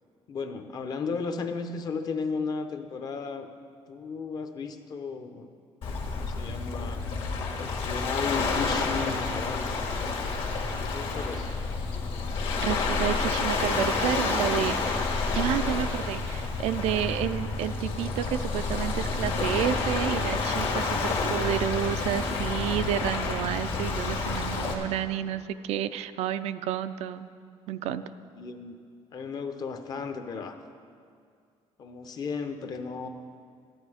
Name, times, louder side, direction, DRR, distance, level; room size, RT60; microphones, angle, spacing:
voice 1, 0.3-3.5 3.9-5.5 5.9-7.0 7.5-10.0 10.8-11.5 21.9-22.2 28.4-28.8 29.1-30.6 31.8-33.1, left 5 dB, 40° left, 7 dB, 0.8 m, -35 dB
Waves surf, 5.8-24.7, left 4 dB, 55° left, 1.7 m, -29 dB
voice 2, 12.6-15.0 15.3-27.3 27.7-28.0, right 10 dB, 80° right, 11 dB, 0.5 m, -30 dB
13.5 x 10.5 x 4.9 m, 2.2 s
cardioid pair, 170°, 11 cm